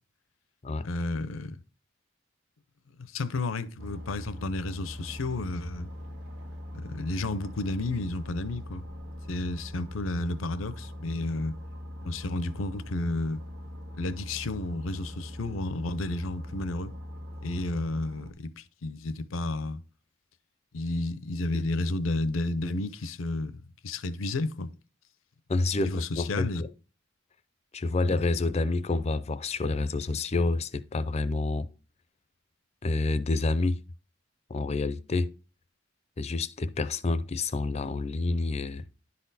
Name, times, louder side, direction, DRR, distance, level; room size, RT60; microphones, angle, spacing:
voice 1, 0.8-1.6 3.1-5.9 6.7-8.8 9.3-11.6 12.0-13.4 14.0-16.9 17.4-19.8 20.7-23.5 23.8-24.7 25.8-26.6, left 2 dB, 80° left, 0.6 m, -32 dB
sound 1, 3.8-18.3, left 1 dB, 65° right, 1.3 m, -41 dB
voice 2, 25.5-26.7 27.7-31.7 32.8-33.8 34.5-35.3 36.2-38.8, left 3 dB, 30° left, 0.4 m, -28 dB
10.5 x 4.2 x 4.0 m
head